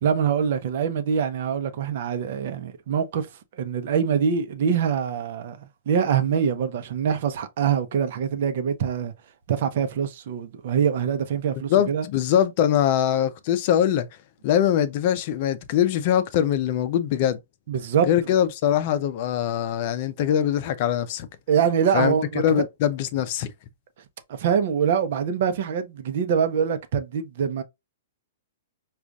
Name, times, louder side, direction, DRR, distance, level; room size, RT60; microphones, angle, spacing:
voice 1, 0.0-3.3 3.6-9.1 9.5-12.1 17.7-18.1 21.5-22.4 24.3-27.6, right 7 dB, 55° right, 0.7 m, -24 dB
voice 2, 11.7-14.1 14.4-17.4 18.1-21.3 21.9-23.5, left 10 dB, 50° left, 0.5 m, -22 dB
5.0 x 2.4 x 2.3 m
hypercardioid pair, 130°, 0 cm